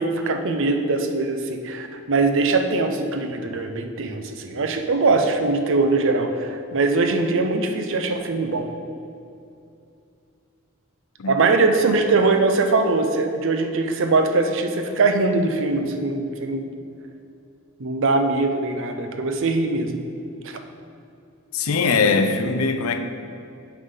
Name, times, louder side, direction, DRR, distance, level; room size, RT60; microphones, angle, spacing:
voice 1, 0.0-8.7 11.3-16.7 17.8-20.0 20.4-20.6, right 3 dB, 60° right, 6 dB, 0.6 m, -22 dB
voice 2, 21.5-23.0, left 4 dB, 80° left, 8 dB, 0.6 m, -21 dB
8.3 x 4.0 x 5.5 m, 2.6 s
head